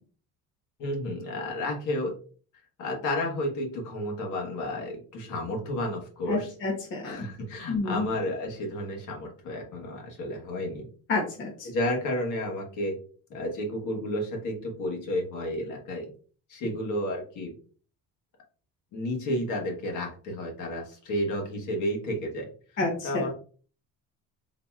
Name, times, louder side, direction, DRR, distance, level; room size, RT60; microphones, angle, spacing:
voice 1, 0.8-2.1 2.8-6.5 7.0-10.9 11.6-13.0 13.3-16.1 16.5-17.5 18.9-22.5 23.0-23.3, left 1 dB, 65° left, 1 dB, 1.3 m, -31 dB
voice 2, 6.3-7.3 7.7-8.1 11.1-11.7 22.8-23.3, left 3 dB, 35° left, 0 dB, 0.8 m, -29 dB
4.0 x 2.8 x 2.3 m, 0.41 s
cardioid pair, 140°, 33 cm